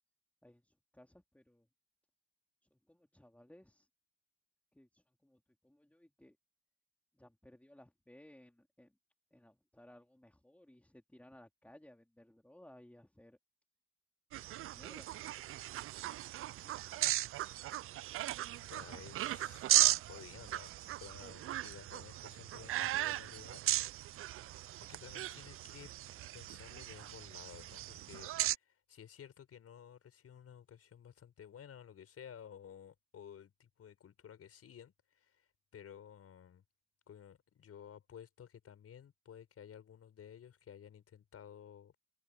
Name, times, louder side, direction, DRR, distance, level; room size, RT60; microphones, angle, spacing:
voice 1, 0.4-1.7 2.6-3.9 4.7-6.4 7.1-9.0 9.3-13.4 14.4-15.8 16.3-17.1, left 1 dB, 5° left, 3.3 m, -61 dB
sound 1, 14.3-28.5, right 14 dB, 45° right, 0.4 m, -37 dB
voice 2, 18.3-23.6 24.8-25.9 26.3-36.6 37.1-42.0, left 8 dB, 50° left, 5.7 m, -54 dB
supercardioid pair, 80°, 30 cm